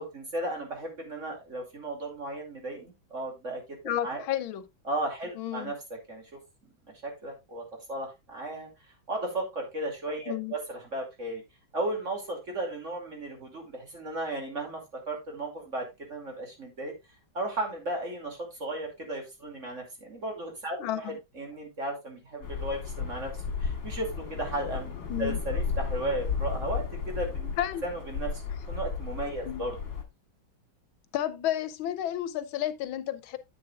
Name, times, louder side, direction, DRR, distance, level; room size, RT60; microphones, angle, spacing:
voice 1, 0.0-3.6 4.0-4.2 4.8-5.8 6.1-6.4 7.0-8.7 9.1-11.4 11.7-14.8 15.1-16.9 17.3-23.3 23.6-27.5 27.8-29.8, right 1 dB, 35° right, 2.9 m, -35 dB
voice 2, 3.8-4.6 5.4-5.7 10.3-10.5 20.8-21.2 25.1-25.4 27.6-27.8 29.5-29.6 31.1-33.4, left 12 dB, 90° left, 1.6 m, -31 dB
sound 1, 22.4-30.0, left 5 dB, 65° left, 2.2 m, -34 dB
9.7 x 8.4 x 2.4 m
omnidirectional pair, 2.2 m